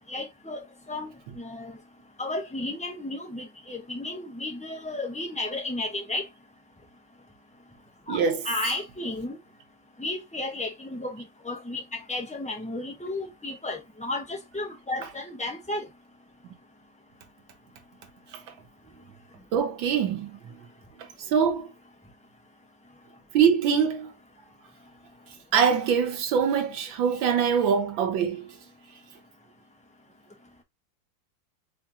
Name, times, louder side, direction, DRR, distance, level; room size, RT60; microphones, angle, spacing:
voice 1, 0.1-1.7 2.2-6.2 8.1-8.2 8.4-9.4 10.0-15.9, left 2 dB, 5° left, 0.6 m, -33 dB
voice 2, 8.1-8.4 16.4-16.5 18.3-18.4 19.5-20.6 21.3-21.7 23.3-24.1 25.5-28.5, right 7 dB, 90° right, 1.7 m, -24 dB
4.3 x 3.6 x 2.8 m
omnidirectional pair, 2.1 m